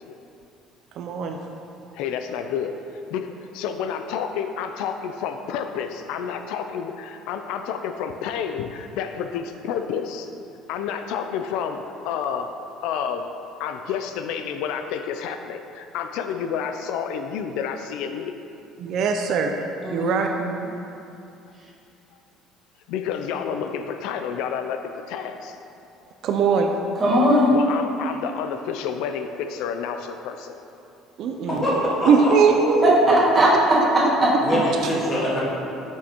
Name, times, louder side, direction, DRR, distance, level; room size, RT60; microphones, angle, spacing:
voice 1, 1.0-1.4 18.8-19.5 19.9-20.3 26.2-26.7 31.2-31.6 32.0-32.9 34.8-34.9, right 5 dB, 45° right, 4 dB, 0.4 m, -20 dB
voice 2, 1.9-2.7 3.1-10.3 10.7-12.5 12.8-13.3 13.6-18.4 22.9-25.6 27.5-30.6, left 7 dB, 70° left, 7 dB, 0.3 m, -30 dB
voice 3, 19.8-20.6 27.0-27.5 33.1-33.8 34.2-34.3, equal, 20° right, -7 dB, 1.5 m, -19 dB
voice 4, 31.5-32.3 34.4-35.4, equal, 25° left, -6 dB, 1.5 m, -24 dB
7.8 x 6.2 x 2.9 m, 2.7 s
cardioid pair, 170°, 0 cm